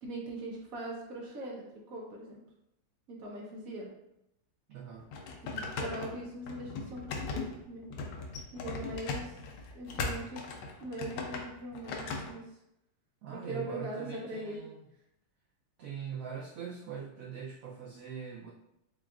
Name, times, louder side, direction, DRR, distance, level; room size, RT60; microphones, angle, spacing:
voice 1, 0.0-2.4 3.1-3.9 5.4-7.8 8.5-9.3 9.7-10.5 10.8-12.4 13.3-14.6, right 1 dB, 60° right, -2 dB, 1.1 m, -41 dB
voice 2, 4.7-5.1 13.2-14.8 15.8-18.5, right 7 dB, 80° right, -3 dB, 0.7 m, -42 dB
sound 1, 4.9-12.3, left 4 dB, 85° left, 1.4 m, -38 dB
6.0 x 2.4 x 2.4 m, 0.82 s
omnidirectional pair, 2.0 m